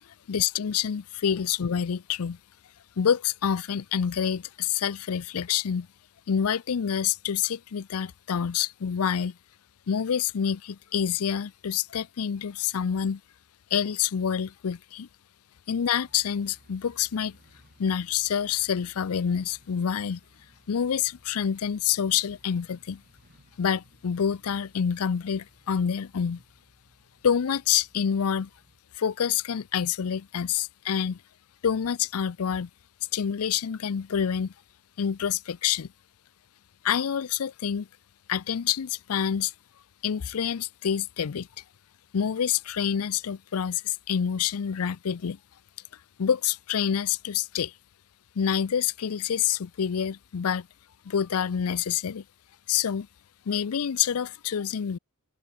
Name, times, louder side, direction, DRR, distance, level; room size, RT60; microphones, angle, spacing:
voice 1, 0.3-2.4 3.0-5.9 6.3-9.4 9.9-13.2 13.7-15.1 15.7-17.4 17.8-20.2 20.7-23.0 23.6-26.4 27.2-28.5 29.0-31.2 31.6-32.7 33.1-34.5 35.0-35.9 36.8-37.9 38.3-39.5 40.0-41.5 42.1-45.4 46.2-47.7 48.4-50.7 51.1-52.2 52.7-53.1 53.5-55.0, left 8 dB, 85° left, 0.5 m, -27 dB
sound 1, 16.0-28.8, right 1 dB, 45° right, 7.4 m, -61 dB
open air
head